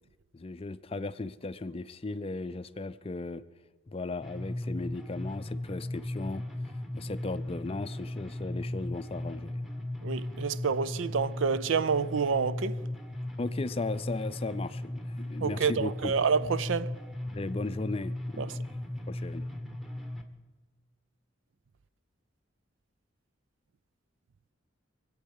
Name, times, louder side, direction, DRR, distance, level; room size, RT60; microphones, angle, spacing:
voice 1, 0.3-3.4 3.9-6.4 6.9-9.6 13.4-16.1 17.3-18.7 19.1-19.5, left 3 dB, 30° left, 0.5 m, -36 dB
sound 1, 4.2-20.2, left 1 dB, ahead, 1.2 m, -37 dB
voice 2, 10.0-12.9 15.4-17.0 18.4-18.6, right 5 dB, 75° right, 0.5 m, -28 dB
23.0 x 8.6 x 6.5 m
head